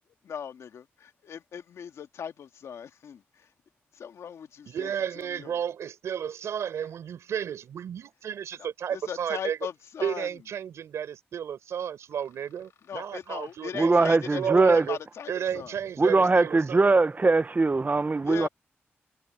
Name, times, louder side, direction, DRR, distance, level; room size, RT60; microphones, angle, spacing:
voice 1, 0.2-3.4 3.9-5.6 8.9-10.3 12.9-15.8 18.2-18.5, left 7 dB, 80° left, 2.0 m, -39 dB
voice 2, 4.7-9.6 10.0-13.9 14.4-15.0 15.3-17.0, right 8 dB, 85° right, 4.3 m, -32 dB
voice 3, 13.7-14.8 16.0-18.5, right 3 dB, 35° right, 0.7 m, -21 dB
cardioid pair, 50°, 5 cm